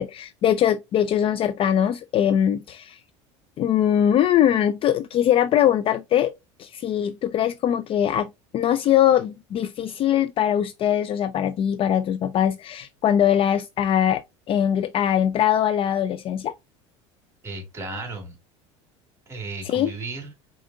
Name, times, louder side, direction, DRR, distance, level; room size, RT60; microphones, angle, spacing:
voice 1, 0.0-3.0 3.6-6.3 6.6-14.2 14.5-16.5 19.7-19.9, left 10 dB, 40° left, 0.4 m, -21 dB
voice 2, 17.4-18.4 19.3-20.3, right 3 dB, 20° right, 2.4 m, -34 dB
5.0 x 3.8 x 2.6 m
supercardioid pair, 105°, 15 cm